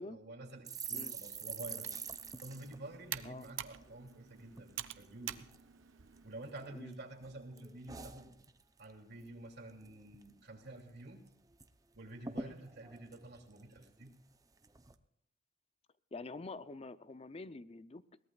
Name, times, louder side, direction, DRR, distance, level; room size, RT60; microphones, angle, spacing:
voice 1, 0.0-1.9 2.4-5.4 6.2-8.4 8.8-11.2 11.9-14.1, right 2 dB, 60° right, 1 dB, 2.9 m, -49 dB
sound 1, 0.6-4.2 4.5-4.7 5.0-5.6 6.1-6.9 7.2-8.9 9.2-9.4 9.7-10.3 10.6-10.7 11.0-11.7 11.9-12.0 12.2-14.1 14.6-14.9, right 5 dB, 20° right, 0.6 m, -46 dB
Computer keyboard, 1.7-6.8, right 11 dB, 90° right, 0.7 m, -48 dB
voice 2, 16.1-18.2, left 3 dB, 30° left, 14 dB, 0.5 m, -47 dB
22.0 x 18.0 x 2.4 m, 0.76 s
head